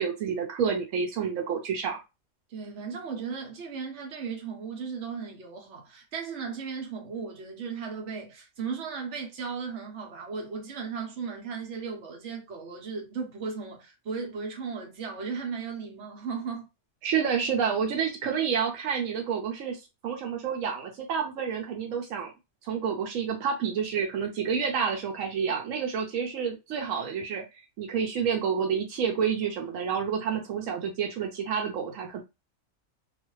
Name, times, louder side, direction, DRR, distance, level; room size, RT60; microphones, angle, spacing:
voice 1, 0.0-2.0 17.0-22.3 22.6-27.4 27.8-32.2, right 7 dB, 85° right, 1.0 m, -29 dB
voice 2, 2.5-16.7, right 5 dB, 65° right, 1.2 m, -36 dB
2.6 x 2.4 x 3.0 m
omnidirectional pair, 1.3 m